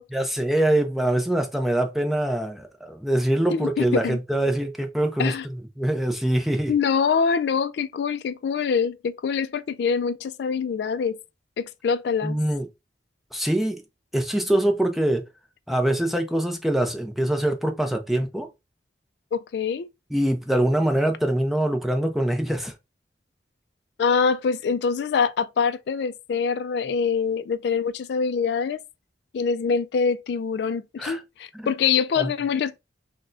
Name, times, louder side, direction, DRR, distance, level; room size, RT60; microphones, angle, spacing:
voice 1, 0.1-6.7 12.2-12.7 13.3-13.8 14.1-15.3 15.7-18.5 20.1-22.7 31.0-31.2 31.5-31.7 32.2-32.3, right 1 dB, ahead, 0.5 m, -24 dB
voice 2, 3.5-4.2 5.2-5.5 6.7-11.2 11.6-12.4 19.3-19.9 24.0-28.8 29.3-32.8, left 6 dB, 65° left, 0.3 m, -24 dB
6.0 x 2.1 x 2.5 m
head